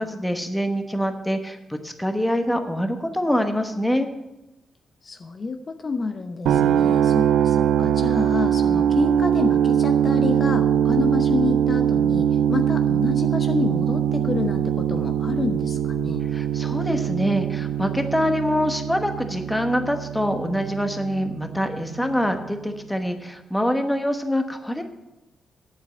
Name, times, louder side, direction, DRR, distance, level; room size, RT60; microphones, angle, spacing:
voice 1, 0.0-4.1 16.3-24.8, equal, 5° left, 6 dB, 1.0 m, -25 dB
voice 2, 5.0-16.3, left 4 dB, 40° left, 6 dB, 0.8 m, -28 dB
sound 1, 6.5-22.4, right 9 dB, 90° right, 0.4 m, -22 dB
8.7 x 7.6 x 8.3 m, 0.98 s
cardioid pair, 115°, 0 cm